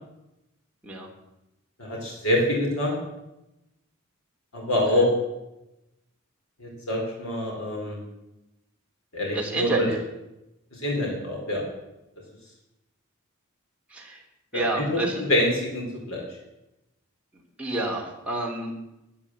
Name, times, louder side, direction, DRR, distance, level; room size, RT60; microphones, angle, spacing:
voice 1, 1.8-3.0 4.5-5.1 6.6-8.0 9.1-9.9 10.7-11.6 14.5-16.2, left 1 dB, 75° left, -1 dB, 4.3 m, -26 dB
voice 2, 9.3-10.0 13.9-14.2 14.5-15.2 17.6-18.9, right 2 dB, 5° right, -3 dB, 3.1 m, -29 dB
12.5 x 9.5 x 8.1 m, 0.93 s
head